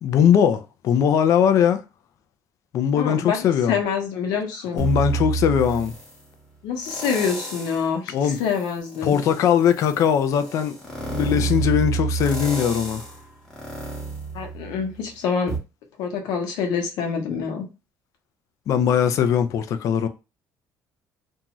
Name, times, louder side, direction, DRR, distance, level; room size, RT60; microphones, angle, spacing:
voice 1, 0.0-1.8 2.7-3.8 4.7-5.9 8.1-8.4 9.0-13.1 18.7-20.1, left 8 dB, 50° left, 0.4 m, -20 dB
voice 2, 2.9-4.8 6.6-9.2 14.3-15.6 16.0-17.6, left 6 dB, 85° left, 0.9 m, -26 dB
sound 1, 4.8-6.2 6.8-7.9 8.3-15.0 15.5-15.6, right 4 dB, 10° left, 0.9 m, -29 dB
2.6 x 2.3 x 2.9 m
cardioid pair, 160°, 7 cm